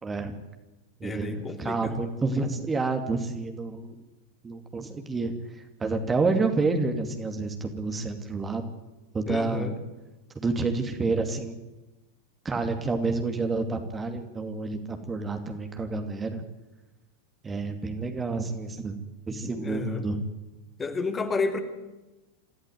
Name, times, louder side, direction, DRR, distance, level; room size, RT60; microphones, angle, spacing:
voice 1, 0.0-0.3 1.0-3.9 4.4-8.6 9.1-9.7 10.3-11.5 12.4-16.4 17.4-19.0 19.3-20.2, right 3 dB, 15° right, 5 dB, 2.5 m, -29 dB
voice 2, 1.0-1.9 9.3-9.7 19.5-20.1 20.8-21.6, left 4 dB, 15° left, 6 dB, 3.0 m, -31 dB
27.5 x 15.5 x 9.5 m, 1.1 s
figure-of-eight pair, 90°, 0 cm